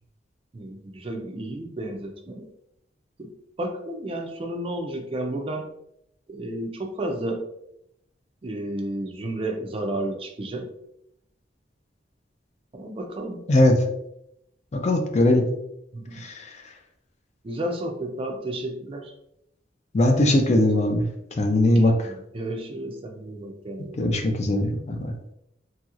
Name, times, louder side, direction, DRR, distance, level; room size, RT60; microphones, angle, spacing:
voice 1, 0.5-2.5 3.2-3.3 3.6-5.7 6.3-7.4 8.4-10.7 12.7-13.4 15.9-16.3 17.4-19.1 21.6-24.2, right 1 dB, 30° right, 3 dB, 0.4 m, -32 dB
voice 2, 14.7-15.4 16.2-16.5 19.9-21.0 21.4-22.1 24.0-25.1, left 1 dB, 40° left, 4 dB, 0.4 m, -20 dB
3.0 x 2.9 x 2.4 m, 0.78 s
head